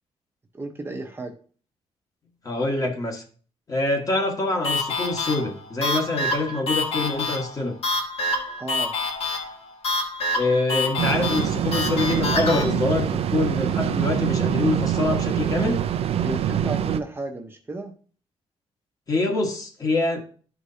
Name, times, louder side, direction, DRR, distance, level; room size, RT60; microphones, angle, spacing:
voice 1, 0.5-1.3 8.6-8.9 10.7-10.9 16.2-17.9, right 2 dB, 20° right, 3 dB, 0.7 m, -33 dB
voice 2, 2.4-3.2 3.7-7.8 10.3-15.8 19.1-20.2, left 2 dB, 30° left, 2 dB, 1.4 m, -25 dB
sound 1, 4.6-12.6, left 2 dB, 55° left, 1.5 m, -27 dB
sound 2, 11.0-17.0, right 10 dB, 60° right, 0.4 m, -24 dB
11.5 x 4.9 x 2.7 m, 0.43 s
wide cardioid pair, 145°, 12 cm